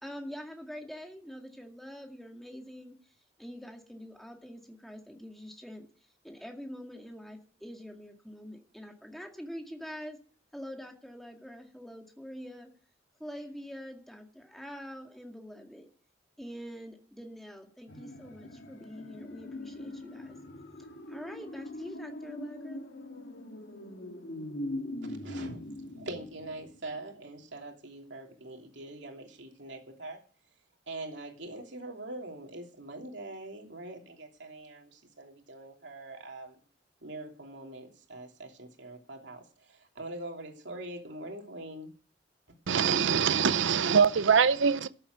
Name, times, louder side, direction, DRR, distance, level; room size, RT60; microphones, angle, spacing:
voice 1, 0.0-3.0 3.4-5.9 6.2-10.2 10.5-12.7 13.2-15.9 16.4-20.4 21.1-22.9, equal, ahead, 2.1 m, -45 dB
sound 1, 17.9-27.0 27.3-27.4, left 1 dB, 75° left, 2.0 m, -42 dB
voice 2, 25.0-25.6 25.9-30.2 30.9-36.6 37.0-41.9, right 2 dB, 70° right, 2.9 m, -43 dB
voice 3, 42.7-44.9, right 6 dB, 90° right, 0.6 m, -23 dB
13.5 x 7.7 x 8.0 m
head